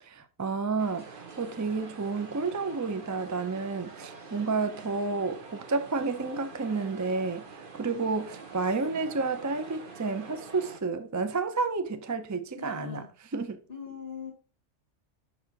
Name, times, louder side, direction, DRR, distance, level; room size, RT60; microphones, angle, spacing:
voice 1, 0.0-13.1 13.3-13.6, right 4 dB, 25° right, 0.4 m, -31 dB
sound 1, 0.8-10.8, right 4 dB, 50° right, 1.1 m, -46 dB
voice 2, 12.6-13.1 13.7-14.3, left 7 dB, 55° left, 2.0 m, -41 dB
6.3 x 4.7 x 4.0 m
omnidirectional pair, 1.2 m